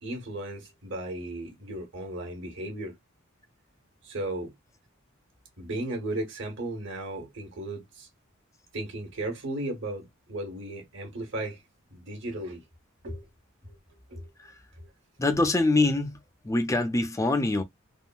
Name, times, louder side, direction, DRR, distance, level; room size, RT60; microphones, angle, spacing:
voice 1, 0.0-2.9 4.0-4.5 5.6-8.1 8.7-11.6 11.9-12.6 13.0-13.2 13.6-13.8 14.1-14.3 14.8-14.9, right 1 dB, 60° right, 1.3 m, -35 dB
voice 2, 15.2-16.2 16.4-17.6, left 2 dB, 15° left, 0.5 m, -24 dB
3.6 x 2.1 x 2.2 m
head